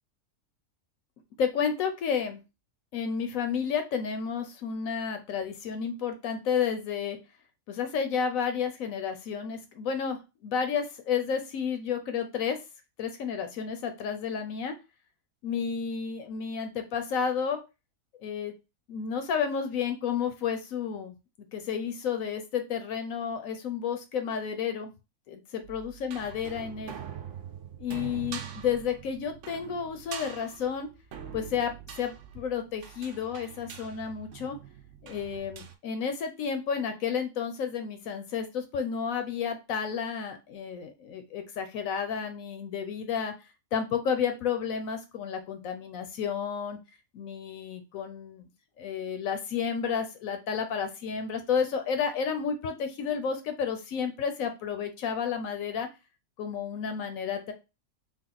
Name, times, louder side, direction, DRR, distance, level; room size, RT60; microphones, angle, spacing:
voice 1, 1.4-2.4 2.9-7.2 7.7-12.6 13.0-14.8 15.4-17.6 18.2-18.5 18.9-21.1 21.5-24.9 25.3-27.0 27.8-30.9 31.3-34.6 35.0-43.3 43.7-46.8 47.1-48.5 48.8-55.9 56.4-57.5, left 7 dB, 70° left, 7 dB, 1.0 m, -31 dB
sound 1, 25.6-35.7, right 8 dB, 65° right, 0.8 m, -44 dB
3.6 x 2.4 x 3.8 m, 0.27 s
omnidirectional pair, 1.6 m